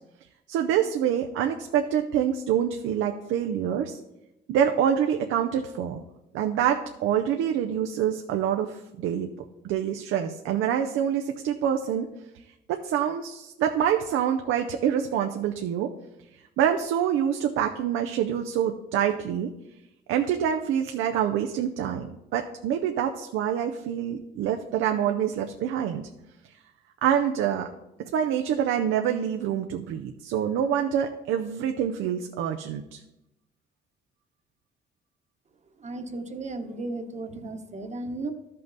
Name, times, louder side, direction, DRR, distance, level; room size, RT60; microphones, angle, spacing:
voice 1, 0.5-4.0 4.5-6.0 6.3-9.3 9.6-12.1 12.3-12.4 12.7-15.9 16.3-19.5 20.1-26.0 27.0-27.7 28.1-33.0, right 9 dB, 90° right, 5 dB, 0.6 m, -26 dB
voice 2, 35.8-38.3, right 2 dB, 35° right, 7 dB, 1.1 m, -35 dB
13.0 x 5.6 x 4.0 m, 0.93 s
cardioid pair, 90°, 20 cm